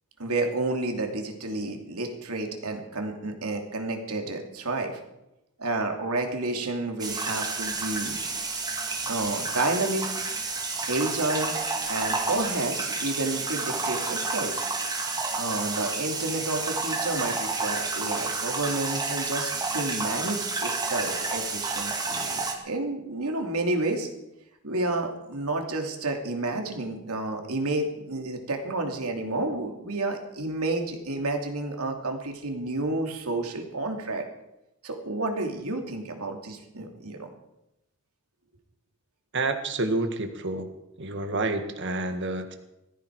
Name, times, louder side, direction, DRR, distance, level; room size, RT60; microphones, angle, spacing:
voice 1, 0.2-5.0 5.6-8.2 9.1-10.1 10.9-11.5 11.9-14.6 15.3-24.1 24.6-34.3 34.8-37.3, right 2 dB, 85° right, 3 dB, 2.8 m, -30 dB
sound 1, 7.0-22.5, right 3 dB, 20° right, 2.0 m, -30 dB
voice 2, 39.3-40.7 41.0-42.6, right 2 dB, 55° right, 7 dB, 1.8 m, -29 dB
19.0 x 15.0 x 4.8 m, 0.88 s
head